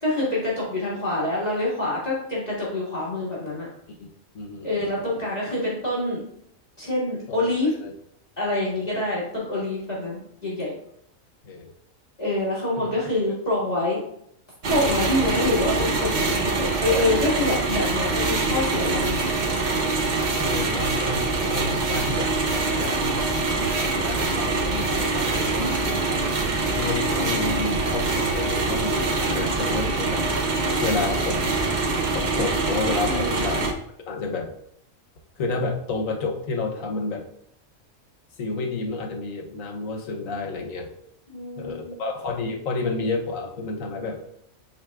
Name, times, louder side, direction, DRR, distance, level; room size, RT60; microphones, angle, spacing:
voice 1, 0.0-3.7 4.6-6.2 6.8-7.7 8.4-10.7 12.2-14.0 14.7-19.2 25.6-26.0 33.1-33.4 41.3-41.9, left 2 dB, 30° left, -8 dB, 1.9 m, -26 dB
voice 2, 4.3-4.7 5.0-5.1 7.3-7.9 8.9-9.0 11.4-11.7 12.8-12.9 13.2-13.3 15.2-15.3 19.1-19.2 20.4-25.8 26.6-30.2 30.8-31.6 32.1-33.7 34.1-34.5 35.4-37.2 38.4-40.9 41.6-44.2, left 3 dB, 80° left, 3 dB, 1.3 m, -30 dB
sound 1, 14.6-33.7, right 3 dB, 45° right, 0.7 m, -24 dB
9.0 x 4.4 x 2.3 m, 0.70 s
omnidirectional pair, 1.4 m